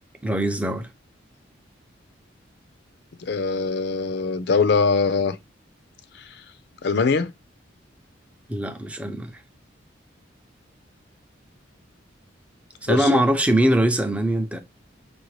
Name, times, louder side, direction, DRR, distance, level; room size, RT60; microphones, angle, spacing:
voice 1, 0.2-0.9 8.5-9.4 12.8-14.6, right 1 dB, 5° right, 0.5 m, -22 dB
voice 2, 3.2-5.4 6.8-7.3 12.9-13.2, left 4 dB, 60° left, 0.5 m, -22 dB
5.0 x 2.6 x 3.1 m
head